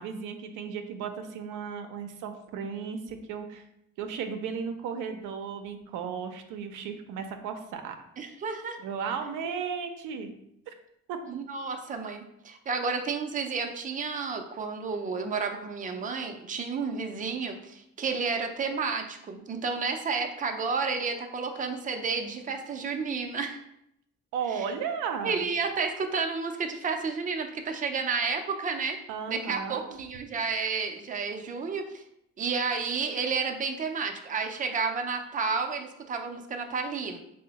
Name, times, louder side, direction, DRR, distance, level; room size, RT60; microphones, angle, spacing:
voice 1, 0.0-3.6 4.0-8.0 8.8-10.3 10.7-10.8 11.1-11.2 24.3-25.5 29.1-30.0, right 6 dB, 90° right, 6 dB, 0.5 m, -35 dB
voice 2, 8.2-8.8 11.3-23.6 24.5-24.6 25.2-29.0 29.3-32.0 32.4-37.2, right 5 dB, 25° right, 5 dB, 0.4 m, -31 dB
3.6 x 2.1 x 4.0 m, 0.78 s
cardioid pair, 90°, 30 cm